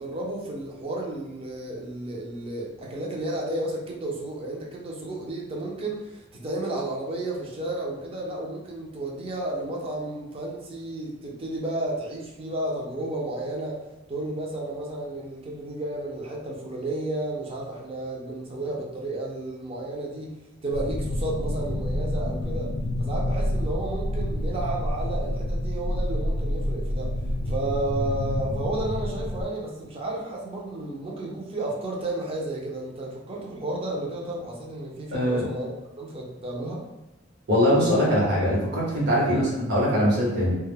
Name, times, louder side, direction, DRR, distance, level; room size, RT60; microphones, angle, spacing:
voice 1, 0.0-13.8 14.1-20.3 20.6-22.7 23.0-27.1 27.5-35.7 36.0-36.8 39.3-39.5, right 2 dB, 30° right, -2 dB, 0.5 m, -32 dB
sound 1, 20.7-29.4, left 1 dB, 55° left, 0.4 m, -28 dB
voice 2, 35.1-35.4 37.5-40.6, equal, 60° right, -4 dB, 1.0 m, -22 dB
2.2 x 2.0 x 3.3 m, 1.0 s
head